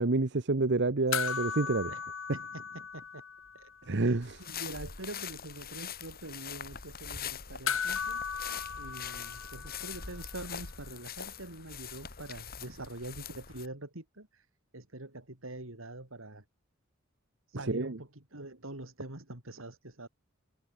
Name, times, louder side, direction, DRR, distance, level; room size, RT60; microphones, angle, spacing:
voice 1, 0.0-1.9 3.9-4.3 17.7-18.0, right 3 dB, 60° right, 1.0 m, -28 dB
sound 1, 1.1-3.8 4.0-4.1 7.7-10.3 12.4-12.5, left 7 dB, 85° left, 2.7 m, -36 dB
voice 2, 1.7-3.2 3.5-8.3 8.8-14.5 14.7-16.4 17.5-20.1, right 2 dB, 90° right, 4.0 m, -45 dB
sound 2, 4.2-13.7, left 8 dB, 50° left, 2.4 m, -43 dB
head